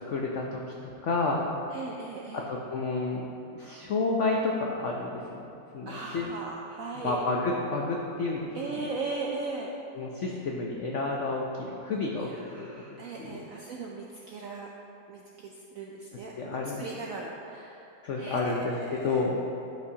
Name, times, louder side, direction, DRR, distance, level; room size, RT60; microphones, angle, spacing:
voice 1, 0.1-1.5 2.3-3.3 3.5-6.3 7.0-8.9 9.9-13.4 16.4-16.8 18.0-19.4, left 3 dB, 80° left, -1 dB, 0.6 m, -31 dB
voice 2, 1.7-2.4 5.9-7.2 8.5-9.7 12.2-14.7 15.1-16.3 16.8-19.3, right 3 dB, 75° right, -2 dB, 0.7 m, -38 dB
11.5 x 5.2 x 2.8 m, 2.7 s
omnidirectional pair, 2.0 m